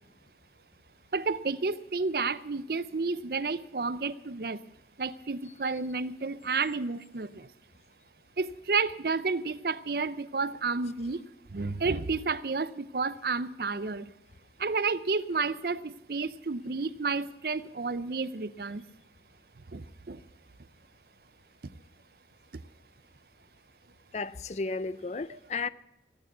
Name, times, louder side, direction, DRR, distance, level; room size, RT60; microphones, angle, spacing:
voice 1, 1.1-4.6 5.0-7.5 8.4-11.2 11.5-14.1 14.6-18.9 19.7-20.2 25.3-25.4, right 4 dB, 55° right, 0.6 m, -31 dB
voice 2, 24.1-25.7, left 4 dB, 40° left, 0.4 m, -33 dB
16.0 x 9.0 x 8.2 m
head